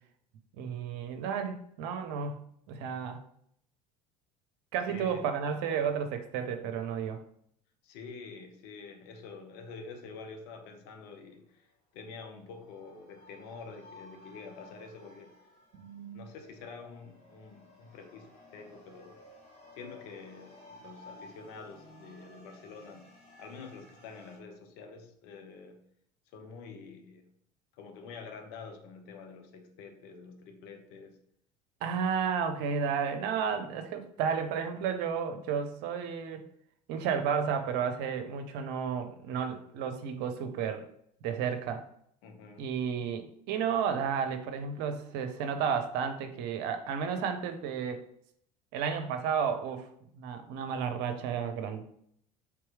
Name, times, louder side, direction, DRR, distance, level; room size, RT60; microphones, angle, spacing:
voice 1, 0.5-2.4 2.7-3.2 4.7-7.2 15.7-16.2 31.8-36.5 36.9-40.8 41.2-41.8 42.6-48.0 48.7-49.9 50.1-51.8, right 7 dB, 55° right, 7 dB, 0.7 m, -32 dB
voice 2, 4.9-5.2 7.8-11.6 11.9-15.3 16.1-19.2 19.7-23.1 23.4-25.8 26.3-27.3 27.8-31.2 42.2-42.7, left 4 dB, 55° left, 4 dB, 0.8 m, -47 dB
sound 1, 12.0-24.4, left 1 dB, 30° left, 1.6 m, -55 dB
3.5 x 3.0 x 4.7 m, 0.69 s
figure-of-eight pair, 70°, 20 cm